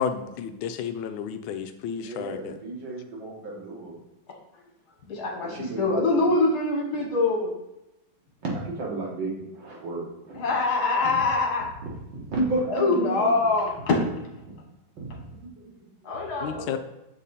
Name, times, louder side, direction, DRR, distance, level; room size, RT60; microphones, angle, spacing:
voice 1, 0.0-2.5 16.4-16.8, left 7 dB, 80° left, 8 dB, 1.3 m, -31 dB
voice 2, 2.0-4.0 5.4-6.2 8.4-10.4 11.0-11.1 12.1-13.5 15.0-15.7, right 2 dB, 70° right, -4 dB, 2.4 m, -32 dB
voice 3, 5.1-7.5 10.4-11.7 12.7-13.7 16.0-16.8, left 3 dB, 55° left, 0 dB, 1.9 m, -24 dB
7.4 x 3.7 x 4.1 m, 0.91 s
omnidirectional pair, 2.2 m